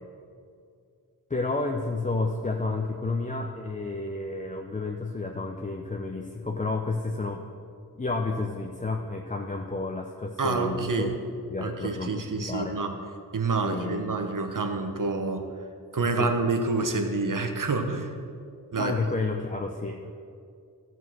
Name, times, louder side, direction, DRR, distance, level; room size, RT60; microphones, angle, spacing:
voice 1, 1.3-7.4 8.0-11.1 11.5-12.8 13.6-14.1 16.2-16.3 18.8-20.1, left 3 dB, 20° left, 2 dB, 0.6 m, -31 dB
voice 2, 10.4-11.1 11.6-12.9 13.3-15.5 15.9-18.1 18.7-18.9, right 3 dB, 55° right, 5 dB, 1.1 m, -27 dB
13.5 x 4.7 x 6.1 m, 2.4 s
wide cardioid pair, 90°, 38 cm